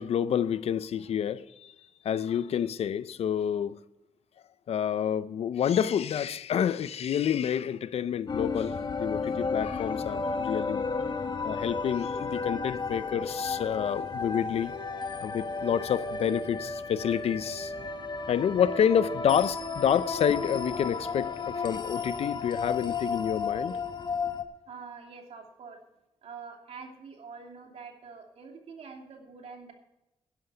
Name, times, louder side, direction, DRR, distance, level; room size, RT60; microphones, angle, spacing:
voice 1, 0.0-1.7 2.0-3.8 4.7-10.9 11.4-17.7 18.3-23.8, left 8 dB, 80° left, 0.6 m, -28 dB
sound 1, 8.3-24.4, left 4 dB, 45° left, 1.3 m, -33 dB
voice 2, 24.7-25.8 26.2-29.7, right 5 dB, 80° right, 2.8 m, -45 dB
11.5 x 11.0 x 5.6 m
cardioid pair, 90°, 10 cm